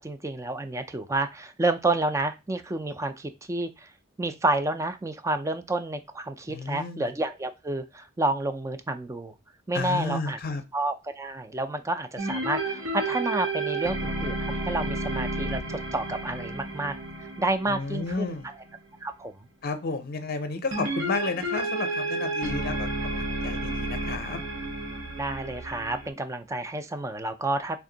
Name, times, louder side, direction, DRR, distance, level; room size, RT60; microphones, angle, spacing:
voice 1, 0.0-3.9 4.2-9.3 9.7-10.4 10.7-16.9 17.4-18.3 19.0-19.3 25.2-27.8, right 2 dB, 15° right, 9 dB, 0.3 m, -29 dB
voice 2, 6.5-7.1 9.7-10.6 17.7-18.5 19.6-24.4, left 3 dB, 50° left, 8 dB, 0.6 m, -32 dB
sound 1, 12.2-18.8 20.7-26.1, right 2 dB, 80° right, 0.9 m, -31 dB
3.5 x 2.6 x 3.8 m, 0.25 s
head